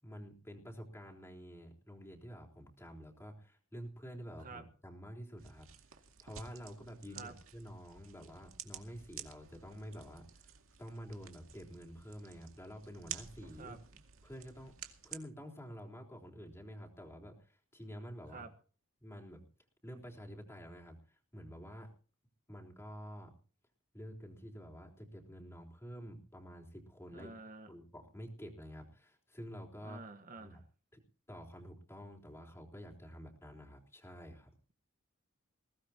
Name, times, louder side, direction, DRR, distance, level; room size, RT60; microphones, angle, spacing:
voice 1, 0.0-5.7 6.2-10.5 10.8-13.8 14.2-14.7 15.0-18.5 19.0-19.4 19.8-21.9 22.5-23.3 23.9-27.3 27.7-30.0 30.4-30.6 30.9-31.0 31.3-34.5, equal, 15° left, 0 dB, 3.6 m, -49 dB
sound 1, 5.4-15.2, right 9 dB, 70° right, 2.3 m, -51 dB
voice 2, 27.1-27.7 29.8-30.6, right 3 dB, 40° right, 7 dB, 1.4 m, -49 dB
21.0 x 17.5 x 2.9 m, 0.40 s
head